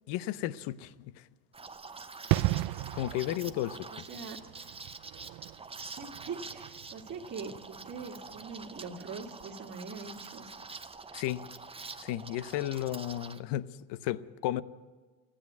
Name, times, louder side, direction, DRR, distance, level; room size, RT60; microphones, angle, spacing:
voice 1, 0.1-1.3 2.9-3.9 11.1-11.4 12.0-14.6, left 14 dB, 65° left, 17 dB, 0.7 m, -34 dB
Liquid, 1.5-13.4, right 4 dB, 15° right, 0.8 m, -46 dB
sound 1, 2.3-8.8 9.1-9.2, right 18 dB, 60° right, 0.5 m, -35 dB
voice 2, 3.9-4.4 6.0-10.5, right 5 dB, 40° right, -2 dB, 2.0 m, -42 dB
15.0 x 10.0 x 9.4 m, 1.4 s
supercardioid pair, 90°, 45 cm